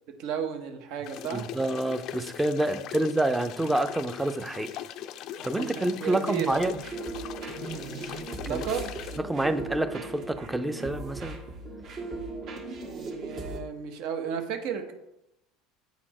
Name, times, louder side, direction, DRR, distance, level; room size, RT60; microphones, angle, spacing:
voice 1, 0.2-1.5 2.7-3.0 5.6-6.6 7.6-7.9 8.4-8.9 12.8-14.9, right 7 dB, 65° right, 0.9 m, -34 dB
sound 1, 1.0-9.2, left 11 dB, 60° left, 0.3 m, -41 dB
voice 2, 1.3-4.7 5.4-6.8 8.4-8.6 9.3-11.4, right 1 dB, 10° right, 0.5 m, -28 dB
sound 2, 6.5-13.6, right 2 dB, 50° right, 1.4 m, -38 dB
8.1 x 4.3 x 2.9 m
supercardioid pair, 95°, 0 cm